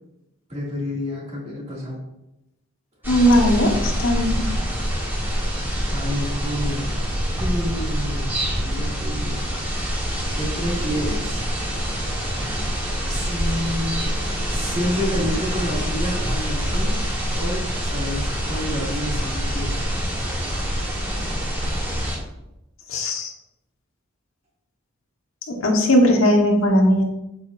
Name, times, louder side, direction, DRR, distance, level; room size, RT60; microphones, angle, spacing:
voice 1, 0.5-2.0 5.9-7.0 7.4-9.4 9.8-11.5 13.1-14.2 14.4-17.0 17.4-19.8, equal, 30° right, -4 dB, 2.6 m, -29 dB
sound 1, 3.0-22.2, equal, 10° right, 2.4 m, -25 dB
voice 2, 3.1-4.4 22.9-23.3 25.5-27.0, equal, 80° left, 1 dB, 1.5 m, -18 dB
8.3 x 7.7 x 2.7 m, 0.89 s
head